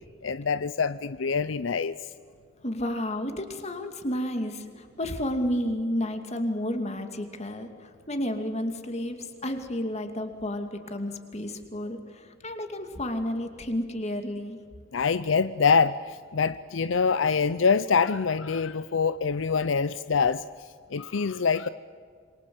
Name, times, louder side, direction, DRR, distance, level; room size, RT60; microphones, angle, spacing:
voice 1, 0.2-1.9 14.9-20.4 20.9-21.7, left 5 dB, 75° left, 14 dB, 0.6 m, -25 dB
voice 2, 2.6-4.6 5.0-7.7 8.1-9.2 9.4-12.0 12.4-14.6, left 1 dB, 35° left, 6 dB, 2.5 m, -31 dB
27.5 x 23.0 x 7.8 m, 2.2 s
head